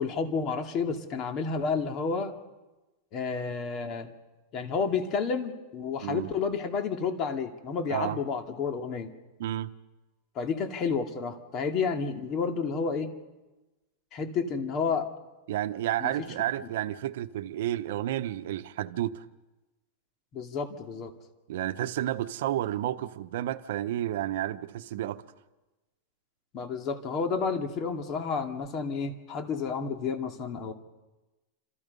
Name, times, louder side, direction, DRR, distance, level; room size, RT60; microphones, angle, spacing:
voice 1, 0.0-2.3 3.1-4.1 4.5-9.1 10.3-13.1 14.1-15.1 16.0-16.1 20.3-21.1 26.5-30.7, left 5 dB, 30° left, 2.4 m, -30 dB
voice 2, 9.4-9.7 15.5-19.2 21.5-25.2, right 13 dB, 70° right, 1.1 m, -31 dB
29.0 x 27.5 x 5.5 m
supercardioid pair, 155°, 0 cm